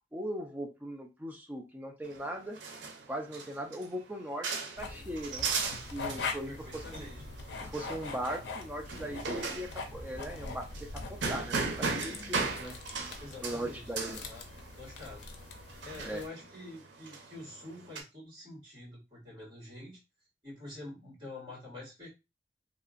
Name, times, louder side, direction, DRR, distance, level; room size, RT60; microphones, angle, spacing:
voice 1, 0.1-2.6 3.1-5.6 5.9-7.1 7.6-12.8 13.1-14.2 16.0-16.2, right 1 dB, 10° right, 3 dB, 0.4 m, -39 dB
sound 1, 2.0-18.0, right 4 dB, 90° right, 0.6 m, -38 dB
sound 2, 4.8-16.3, left 3 dB, 75° left, 0.5 m, -43 dB
voice 2, 6.5-7.2 13.2-14.4 14.8-15.2 15.8-20.0 20.4-22.1, left 2 dB, 25° right, -6 dB, 1.8 m, -46 dB
2.8 x 2.4 x 2.4 m, 0.26 s
head